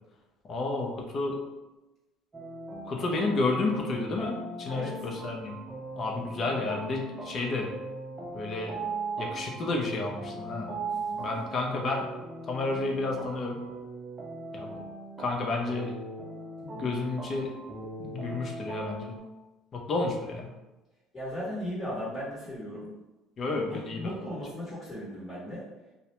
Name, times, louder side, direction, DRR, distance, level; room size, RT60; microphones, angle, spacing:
voice 1, 0.5-1.4 2.8-5.6 6.0-7.7 8.3-8.8 9.2-10.7 11.2-12.1 12.5-13.6 14.5-14.7 15.2-16.0 16.6-17.5 18.0-19.1 19.7-20.5 23.4-24.1, left 3 dB, 40° left, 0 dB, 0.6 m, -31 dB
sound 1, 2.3-19.2, right 3 dB, 25° right, 0.5 m, -39 dB
voice 2, 21.1-22.9 23.6-25.6, equal, 25° left, -9 dB, 1.0 m, -37 dB
2.3 x 2.1 x 2.9 m, 1.1 s
supercardioid pair, 100°, 0 cm